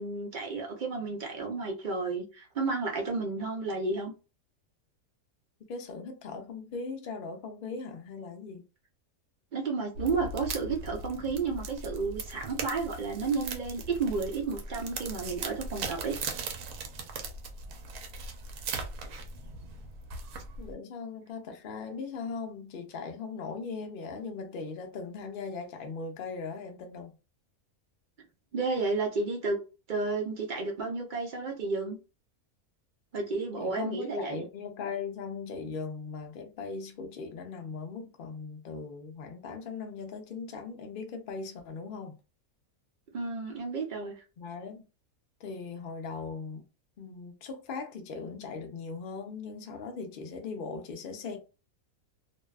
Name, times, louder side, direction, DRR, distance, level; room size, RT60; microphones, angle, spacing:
voice 1, 0.0-4.1 9.5-16.2 28.5-29.6 29.9-32.0 33.1-34.4 43.1-44.2, right 4 dB, 60° right, 0.5 m, -32 dB
voice 2, 5.7-8.6 20.6-27.1 33.6-42.2 44.4-44.8 45.4-46.6 47.0-51.4, left 4 dB, 70° left, 0.5 m, -39 dB
sound 1, 9.9-20.7, right 3 dB, 80° right, 1.0 m, -39 dB
2.6 x 2.2 x 2.3 m
omnidirectional pair, 1.5 m